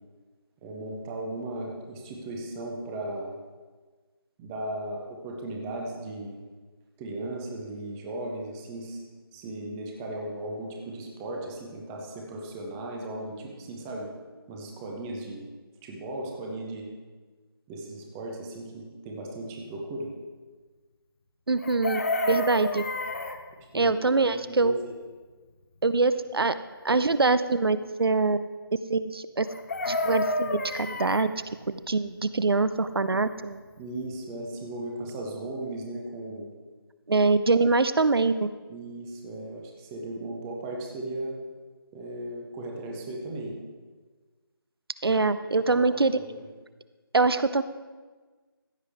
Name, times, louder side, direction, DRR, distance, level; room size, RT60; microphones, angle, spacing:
voice 1, 0.6-3.4 4.4-6.4 7.0-9.0 9.3-14.1 14.5-15.5 15.8-16.9 17.7-20.1 23.7-25.0 33.8-36.5 38.7-41.4 41.9-43.5 45.1-45.2 45.7-46.5, right 1 dB, 5° right, -1 dB, 0.5 m, -36 dB
voice 2, 21.5-22.8 23.7-24.8 25.8-26.5 26.8-28.5 28.9-29.5 29.9-31.3 31.7-33.6 37.1-38.5 45.0-46.1 47.1-47.6, right 3 dB, 75° right, 13 dB, 0.6 m, -24 dB
Chicken rooster, 21.6-23.4 29.5-31.3 33.5-33.6 33.9-34.1, left 2 dB, 40° left, 0.8 m, -29 dB
15.0 x 7.9 x 3.4 m, 1.4 s
figure-of-eight pair, 165°, 13 cm